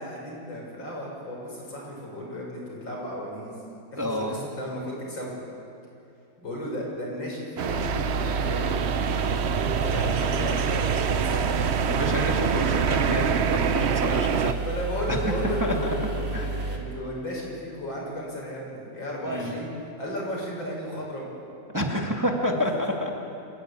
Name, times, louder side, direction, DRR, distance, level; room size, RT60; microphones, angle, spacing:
voice 1, 0.0-3.5 3.9-5.4 6.4-8.9 9.8-11.5 13.0-13.3 14.0-14.2 14.6-19.7 20.0-21.3 22.5-22.6, equal, 85° left, -3 dB, 7.4 m, -34 dB
voice 2, 4.0-4.4 11.8-14.6 15.1-15.3 15.6-16.0 16.3-16.5 19.3-19.6 21.7-23.1, left 1 dB, 10° right, 0 dB, 2.1 m, -28 dB
sound 1, 7.6-14.5, right 8 dB, 65° right, 0.6 m, -26 dB
sound 2, 7.7-16.8, right 2 dB, 50° right, 3.4 m, -31 dB
26.5 x 14.5 x 9.8 m, 2.6 s
omnidirectional pair, 2.0 m